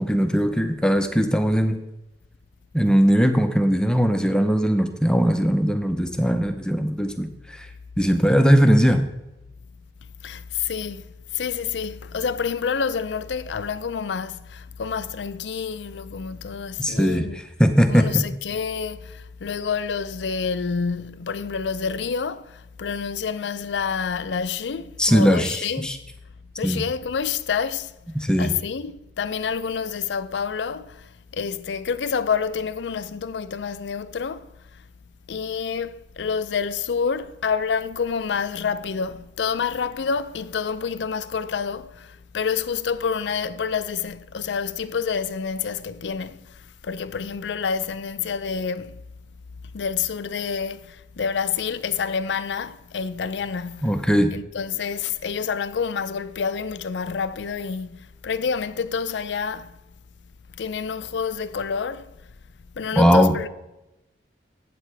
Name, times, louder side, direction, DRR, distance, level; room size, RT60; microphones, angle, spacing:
voice 1, 0.0-1.8 2.7-7.3 7.5-7.7 8.0-9.0 16.8-17.3 17.6-18.3 25.0-26.0 26.6-26.8 28.1-28.5 53.8-54.3 63.0-63.3, equal, 5° left, 0.7 m, -19 dB
voice 2, 10.2-11.1 11.3-17.4 17.9-25.9 26.6-27.9 28.4-34.8 35.3-49.0 49.7-54.0 54.3-59.8 60.5-62.1 62.8-63.5, left 6 dB, 90° left, 0.5 m, -28 dB
12.0 x 8.5 x 3.4 m
head